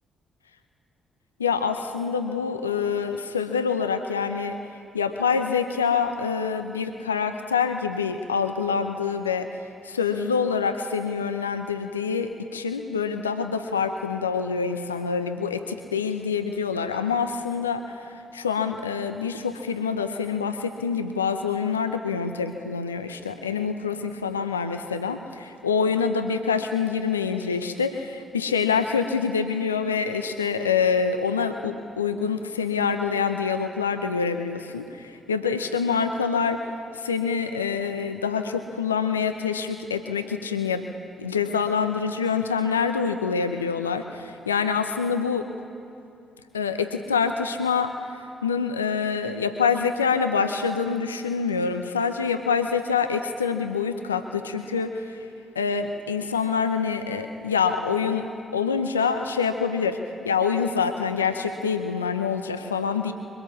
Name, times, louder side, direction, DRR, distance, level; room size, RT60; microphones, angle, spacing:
voice 1, 1.4-4.6 4.9-9.5 9.8-36.6 36.9-40.8 41.2-45.5 46.5-47.9 48.4-55.2 55.5-58.3 58.5-60.0 60.2-63.1, left 6 dB, 85° left, 8 dB, 0.6 m, -26 dB
23.5 x 18.0 x 7.1 m, 2.6 s
figure-of-eight pair, 40°, 0 cm